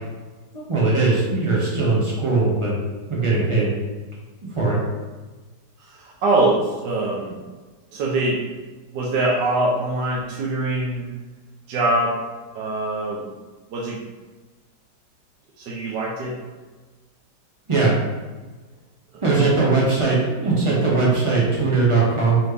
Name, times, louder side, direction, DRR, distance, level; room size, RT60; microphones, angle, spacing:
voice 1, 0.5-2.8 3.1-3.7 4.5-4.8 17.7-17.9 19.2-22.4, right 3 dB, 25° right, -5 dB, 0.6 m, -20 dB
voice 2, 5.8-7.4 7.9-8.4 8.9-11.1 11.7-12.2 12.5-13.3 13.7-14.0 15.6-16.4 19.1-19.2, right 2 dB, 75° right, -4 dB, 1.2 m, -23 dB
4.1 x 2.9 x 3.3 m, 1.3 s
omnidirectional pair, 1.9 m